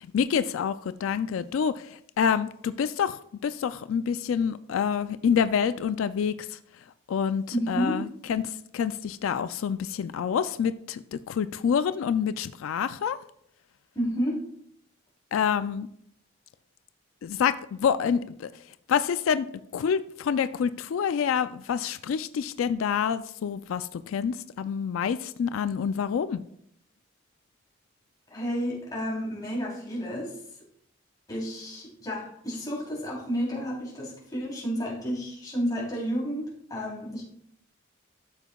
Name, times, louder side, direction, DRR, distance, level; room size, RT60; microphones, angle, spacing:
voice 1, 0.1-6.6 7.1-13.2 15.3-15.9 17.2-18.5 18.9-19.5 19.7-26.4, left 7 dB, 90° left, 13 dB, 0.3 m, -27 dB
voice 2, 7.5-8.0 13.9-14.4 28.3-30.4 31.3-37.2, equal, 20° left, -4 dB, 3.3 m, -31 dB
12.5 x 7.1 x 2.3 m, 0.69 s
head